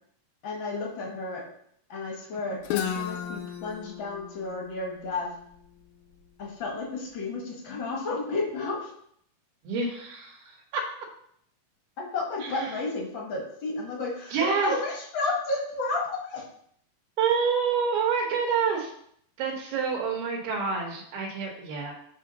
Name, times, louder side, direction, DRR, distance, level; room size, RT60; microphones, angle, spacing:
voice 1, 0.4-1.4 1.9-5.3 6.4-8.9 12.0-16.4, left 3 dB, 45° left, -2 dB, 1.6 m, -32 dB
Guitar, 2.6-6.4, left 9 dB, 85° left, 2.5 m, -35 dB
voice 2, 9.7-10.4 10.7-10.8 12.4-12.8 14.3-14.7 17.2-18.9 19.4-21.9, right 5 dB, 85° right, 0 dB, 3.3 m, -27 dB
7.6 x 3.9 x 5.4 m, 0.67 s
omnidirectional pair, 4.4 m